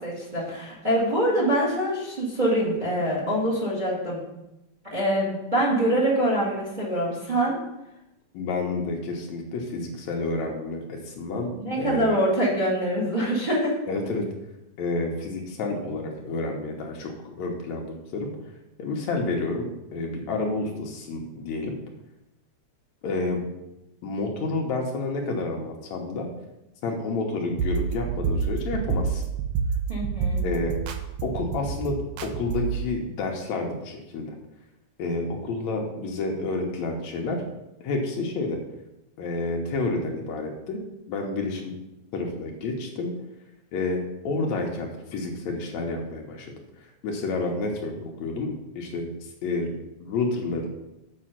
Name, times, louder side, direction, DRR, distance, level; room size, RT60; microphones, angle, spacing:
voice 1, 0.0-4.2 4.9-7.5 11.5-13.8 29.9-30.4, right 1 dB, 20° right, -4 dB, 1.8 m, -24 dB
voice 2, 8.3-11.5 11.8-12.2 13.9-14.3 14.8-18.3 18.8-21.8 23.0-23.5 24.0-26.3 26.8-29.2 30.4-30.8 31.2-34.3 35.0-37.4 37.8-38.6 39.2-41.7 42.1-43.1 43.7-46.5 46.8-49.1 49.4-49.7 50.0-50.7, left 3 dB, 70° left, 1 dB, 2.2 m, -29 dB
sound 1, 27.6-32.8, right 6 dB, 85° right, 1.3 m, -28 dB
7.7 x 5.6 x 5.7 m, 0.92 s
omnidirectional pair, 3.5 m